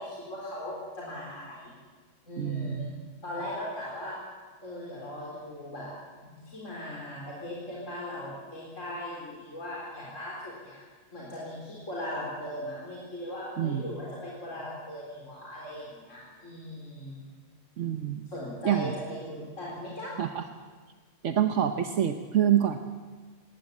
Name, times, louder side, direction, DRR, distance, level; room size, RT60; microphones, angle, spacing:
voice 1, 0.0-1.7 2.2-2.9 3.2-4.2 4.6-5.9 6.2-10.8 11.1-17.2 18.3-20.1, left 1 dB, 75° left, -5 dB, 4.4 m, -38 dB
voice 2, 2.4-2.9 13.6-13.9 17.8-18.2 18.6-18.9 20.2-20.4 21.2-22.8, right 10 dB, 70° right, 7 dB, 1.2 m, -26 dB
19.5 x 18.5 x 8.3 m, 1.5 s
omnidirectional pair, 1.3 m